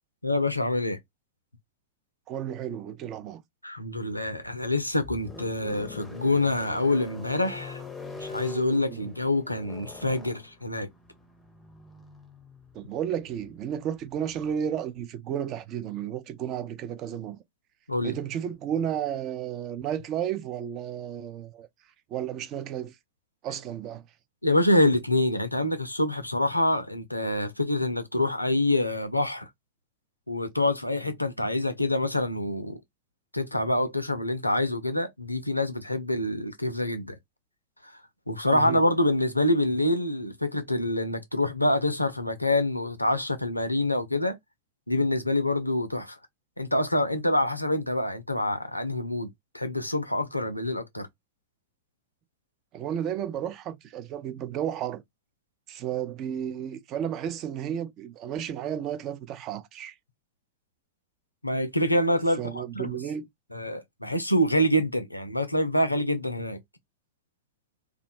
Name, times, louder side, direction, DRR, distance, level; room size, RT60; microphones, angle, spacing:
voice 1, 0.2-1.0 3.6-7.8 8.2-10.9 17.9-18.2 24.4-29.5 30.3-32.8 33.3-37.1 37.8-37.9 38.3-44.4 44.9-46.2 46.6-51.1 61.4-63.0 63.5-66.6, left 1 dB, 85° left, 0.4 m, -26 dB
voice 2, 2.3-3.4 8.9-9.0 12.7-17.4 18.0-21.7 22.1-23.0 23.4-24.1 38.5-38.8 52.7-55.0 55.7-60.0 62.4-63.3, right 9 dB, 35° right, 0.4 m, -32 dB
sound 1, 4.3-14.5, left 3 dB, 15° left, 0.6 m, -44 dB
2.3 x 2.1 x 2.6 m
figure-of-eight pair, 90°, 0 cm